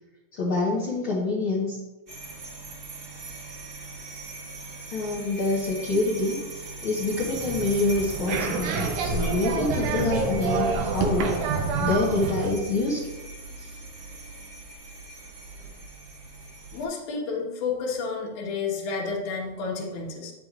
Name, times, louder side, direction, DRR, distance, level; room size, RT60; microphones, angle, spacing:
voice 1, 0.3-1.8 4.9-13.0 13.6-13.7, left 2 dB, 55° left, -6 dB, 1.7 m, -26 dB
sound 1, 2.1-16.8, right 2 dB, 45° right, 0.9 m, -40 dB
sound 2, 7.1-12.5, right 4 dB, 75° right, 2.2 m, -28 dB
voice 2, 16.7-20.3, left 4 dB, 70° left, -2 dB, 2.7 m, -30 dB
9.5 x 8.2 x 2.4 m, 1.2 s
omnidirectional pair, 3.6 m